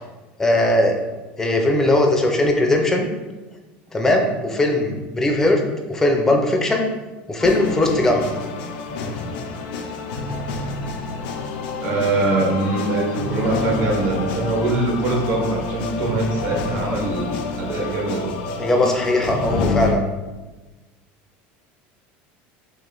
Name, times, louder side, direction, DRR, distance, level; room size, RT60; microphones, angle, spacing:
voice 1, 0.4-0.9 1.4-3.1 3.9-5.6 5.9-6.9 7.3-8.3 18.6-20.1, left 1 dB, 10° left, 2 dB, 0.4 m, -19 dB
sound 1, 7.4-19.9, left 4 dB, 80° left, 0.4 m, -28 dB
voice 2, 11.8-18.3, right 2 dB, 65° right, 0 dB, 0.9 m, -23 dB
3.1 x 2.5 x 3.7 m, 1.2 s
cardioid pair, 155°, 5 cm